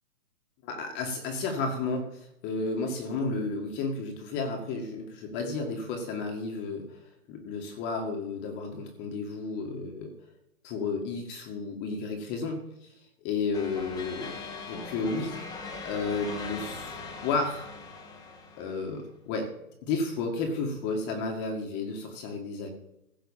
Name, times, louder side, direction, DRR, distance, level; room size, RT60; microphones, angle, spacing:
voice 1, 0.6-7.0 7.3-10.1 10.6-12.9 13.2-14.4 14.7-15.5 15.8-17.7 18.6-19.5 19.8-22.7, left 3 dB, 25° left, 3 dB, 1.9 m, -32 dB
sound 1, 13.5-19.0, left 4 dB, 10° left, 1.5 m, -40 dB
16.0 x 5.6 x 7.3 m, 0.81 s
hypercardioid pair, 140°, 44 cm